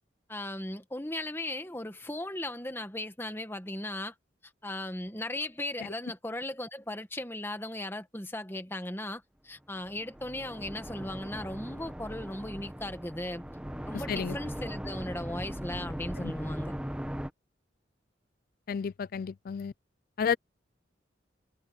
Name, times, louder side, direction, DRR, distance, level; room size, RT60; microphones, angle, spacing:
voice 1, 0.3-4.1 4.6-13.4 13.9-16.7, left 1 dB, 15° left, 1.7 m, -37 dB
sound 1, 9.8-17.3, equal, 5° right, 1.0 m, -39 dB
voice 2, 18.7-19.7 20.2-20.4, left 6 dB, 50° left, 0.3 m, -31 dB
head